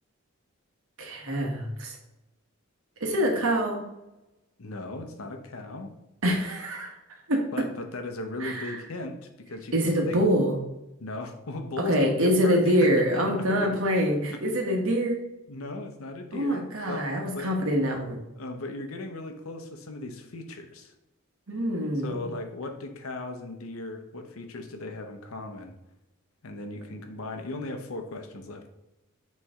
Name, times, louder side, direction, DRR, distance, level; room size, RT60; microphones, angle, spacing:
voice 1, 1.0-2.0 3.0-3.8 6.2-7.4 8.4-8.8 9.7-10.6 11.8-15.2 16.3-18.2 21.5-22.3, equal, 80° right, 1 dB, 1.4 m, -25 dB
voice 2, 4.6-5.9 7.5-10.2 11.0-13.8 14.3-14.4 15.5-17.1 17.3-17.5 18.3-20.9 22.0-25.7 26.4-28.7, left 2 dB, 80° left, 6 dB, 0.8 m, -37 dB
8.4 x 3.2 x 3.6 m, 0.95 s
head